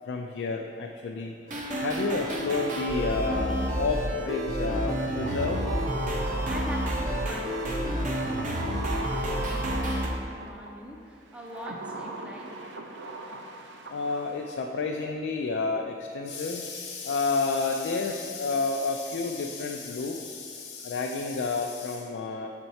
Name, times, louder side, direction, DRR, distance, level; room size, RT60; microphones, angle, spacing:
voice 1, 0.1-1.4 1.8-5.6 13.9-22.5, left 4 dB, 75° left, 1 dB, 0.3 m, -30 dB
sound 1, 1.5-10.1, equal, 45° right, 0.8 m, -30 dB
sound 2, 5.2-10.7 11.3-14.6 14.8-14.9, right 2 dB, 85° right, 0.5 m, -39 dB
voice 2, 6.5-12.5, equal, 5° right, -1 dB, 0.4 m, -43 dB
5.6 x 4.4 x 4.1 m, 2.6 s
head